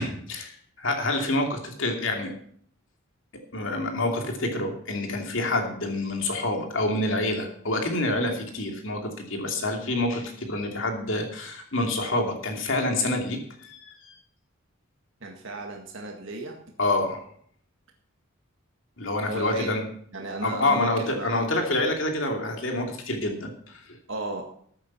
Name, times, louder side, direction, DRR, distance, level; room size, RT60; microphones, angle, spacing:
voice 1, 0.0-2.3 3.5-14.2 16.8-17.2 19.0-19.8 20.4-24.0, left 2 dB, 65° left, 3 dB, 2.7 m, -27 dB
voice 2, 15.2-16.6 19.2-19.8 20.1-21.4 24.1-24.5, right 2 dB, 65° right, 1 dB, 1.9 m, -35 dB
14.0 x 8.8 x 5.8 m, 0.62 s
head